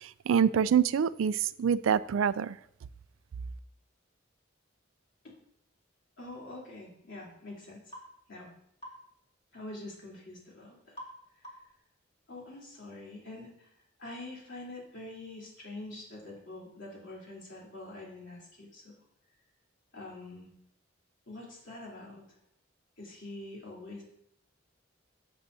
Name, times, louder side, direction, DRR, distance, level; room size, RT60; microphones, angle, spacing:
voice 1, 0.0-2.6, right 7 dB, 85° right, 17 dB, 0.4 m, -26 dB
voice 2, 6.2-7.8 8.3-8.5 9.5-11.0 12.3-13.7 14.0-18.9 19.9-20.5 21.3-22.2 23.0-24.0, left 2 dB, 65° left, -4 dB, 3.4 m, -45 dB
sound 1, 7.9-8.1 8.8-9.0 11.0-11.2 11.4-11.8, equal, 30° left, 2.3 m, -45 dB
11.5 x 7.8 x 2.7 m, 0.73 s
head